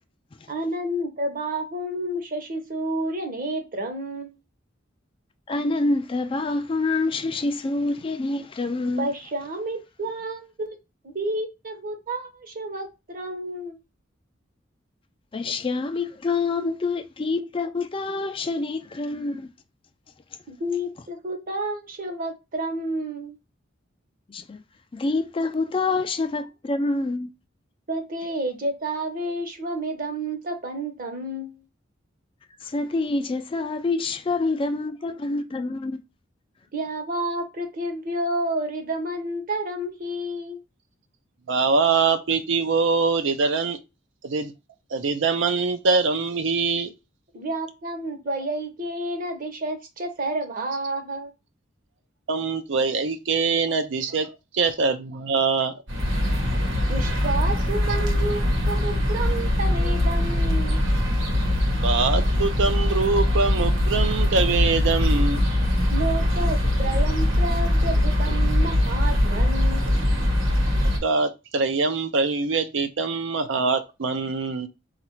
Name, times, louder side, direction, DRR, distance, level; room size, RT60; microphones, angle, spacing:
voice 1, 0.5-4.3 9.0-10.8 11.0-13.8 20.5-23.4 27.9-31.6 36.7-40.6 47.3-51.3 56.9-60.8 65.9-69.8, right 1 dB, 45° right, 1.0 m, -30 dB
voice 2, 5.5-9.1 15.3-19.5 24.3-24.6 24.9-27.3 32.7-36.0, left 3 dB, 25° left, 0.4 m, -26 dB
voice 3, 41.5-43.8 44.2-44.5 44.9-46.9 52.3-54.3 54.5-55.8 61.8-65.4 71.0-74.7, right 4 dB, 70° right, 0.5 m, -23 dB
sound 1, 55.9-71.0, left 1 dB, 90° right, 1.1 m, -22 dB
4.0 x 2.5 x 4.4 m
head